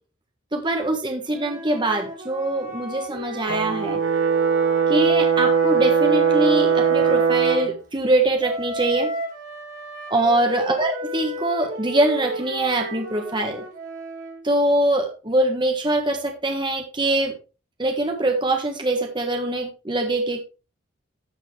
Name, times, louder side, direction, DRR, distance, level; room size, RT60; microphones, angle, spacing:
voice 1, 0.5-4.0 4.9-9.1 10.1-13.6 14.4-17.3 17.8-20.4, right 1 dB, 25° right, 3 dB, 1.4 m, -23 dB
Wind instrument woodwind instrument, 1.3-7.7 8.4-14.4, right 1 dB, 40° right, 4.1 m, -34 dB
Brass instrument, 3.5-7.7, right 6 dB, 75° right, 1.4 m, -20 dB
13.0 x 7.5 x 3.3 m, 0.31 s
head